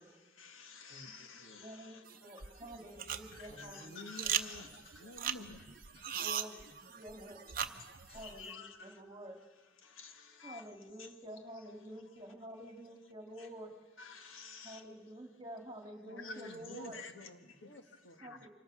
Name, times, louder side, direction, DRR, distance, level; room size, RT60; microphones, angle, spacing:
voice 1, 0.0-2.0 3.3-4.8 6.1-6.2 7.7-9.0 9.8-10.6 11.0-11.1 13.4-13.5 14.0-14.8 16.2-16.6 16.9-17.3 18.2-18.5, left 5 dB, 90° left, 1.5 m, -52 dB
voice 2, 0.9-1.7 3.5-5.8 16.1-18.4, left 2 dB, 70° left, 1.8 m, -52 dB
voice 3, 1.6-4.1 6.2-6.6 6.9-7.4 7.7-7.9 8.1-9.4 10.4-13.8 14.6-17.0 18.2-18.5, right 1 dB, 25° right, 2.2 m, -49 dB
sound 1, 2.1-8.5, right 9 dB, 45° right, 0.8 m, -40 dB
25.5 x 19.5 x 6.2 m
head